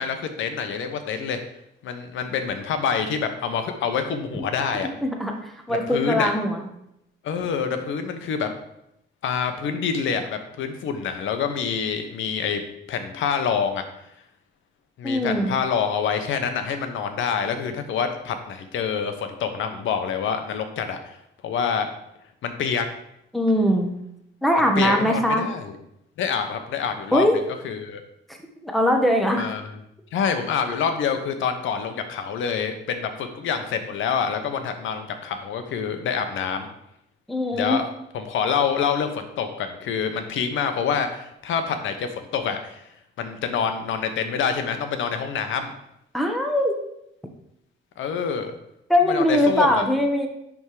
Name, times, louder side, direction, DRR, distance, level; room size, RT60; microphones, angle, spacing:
voice 1, 0.0-1.4 1.8-4.9 5.7-6.3 7.2-8.5 9.2-12.6 12.9-13.8 15.0-21.2 21.4-21.9 22.4-22.9 24.8-25.8 26.2-27.3 27.6-28.0 29.4-29.7 30.1-36.7 37.5-37.9 38.1-42.8 43.2-45.7 48.0-48.5 49.1-49.8, left 6 dB, 80° left, 7 dB, 1.0 m, -26 dB
voice 2, 5.0-6.6 15.0-15.5 23.3-23.9 24.4-25.4 27.1-27.4 28.6-29.5 37.3-37.8 46.1-46.8 48.9-50.3, equal, ahead, 3 dB, 1.2 m, -21 dB
10.5 x 3.6 x 4.9 m, 0.80 s
cardioid pair, 90°, 20 cm